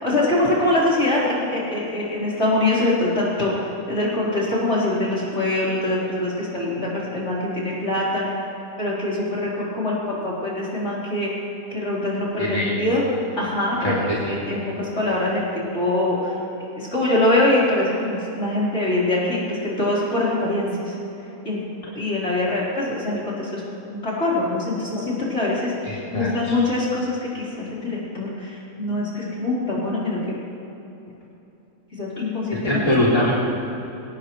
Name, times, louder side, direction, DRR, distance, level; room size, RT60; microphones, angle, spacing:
voice 1, 0.0-8.3 8.8-11.3 11.7-13.0 13.4-13.9 14.3-16.3 16.8-21.0 21.4-21.6 21.9-30.2 32.0-32.8, left 2 dB, 50° left, -7 dB, 4.5 m, -23 dB
voice 2, 12.4-12.7 13.8-14.2 25.8-26.6 32.6-33.3, left 1 dB, 25° left, -8 dB, 3.2 m, -22 dB
22.5 x 18.5 x 3.2 m, 2.9 s
omnidirectional pair, 1.5 m